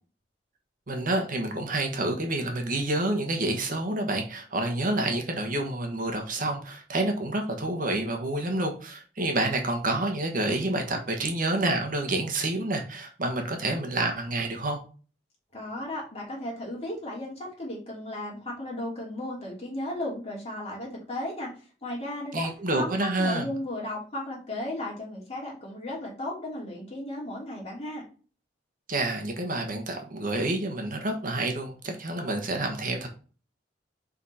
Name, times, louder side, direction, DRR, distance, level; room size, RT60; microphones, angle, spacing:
voice 1, 0.9-14.8 22.3-23.5 28.9-33.1, right 2 dB, 50° right, 4 dB, 1.3 m, -28 dB
voice 2, 15.5-21.5 21.8-22.5 22.7-28.1, left 1 dB, 35° left, -3 dB, 2.9 m, -35 dB
5.4 x 4.9 x 4.2 m, 0.37 s
head